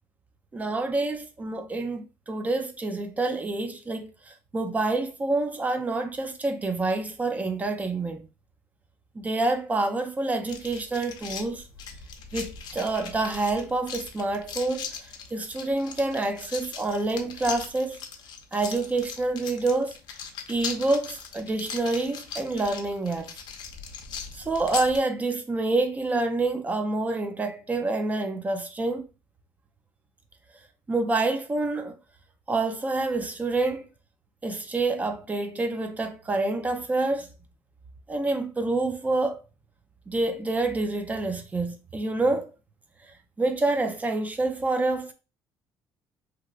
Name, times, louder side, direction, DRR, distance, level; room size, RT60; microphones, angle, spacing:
voice 1, 0.5-4.1 4.5-8.2 9.2-11.6 12.3-14.9 15.3-18.0 18.5-20.0 20.5-23.3 24.3-29.0 30.9-32.0 32.5-33.9 34.4-37.3 38.1-39.4 40.1-42.5 43.4-45.1, right 2 dB, 20° right, 0.5 m, -27 dB
sound 1, 10.5-25.0, left 6 dB, 60° left, 0.6 m, -39 dB
3.1 x 2.8 x 2.4 m
cardioid pair, 115°, 8 cm